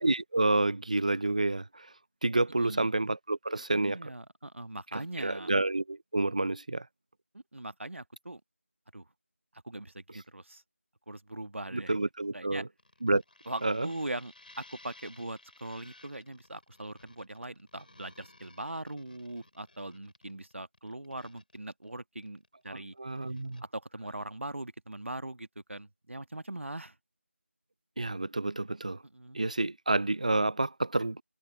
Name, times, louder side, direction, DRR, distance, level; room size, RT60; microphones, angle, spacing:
voice 1, 0.0-1.9 2.2-4.1 4.9-6.9 11.7-12.7 13.0-13.2 13.6-13.9 23.0-23.6 28.0-29.0 29.3-31.2, right 2 dB, 35° right, 0.6 m, -29 dB
voice 2, 2.6-2.9 3.7-5.5 7.3-8.4 8.9-9.1 9.6-10.6 11.1-12.0 12.3-12.6 13.5-22.9 23.7-26.9 29.0-29.4, right 1 dB, 65° right, 1.6 m, -41 dB
sound 1, 12.8-22.8 23.1-23.6, left 2 dB, 40° left, 5.6 m, -57 dB
figure-of-eight pair, 170°, 7 cm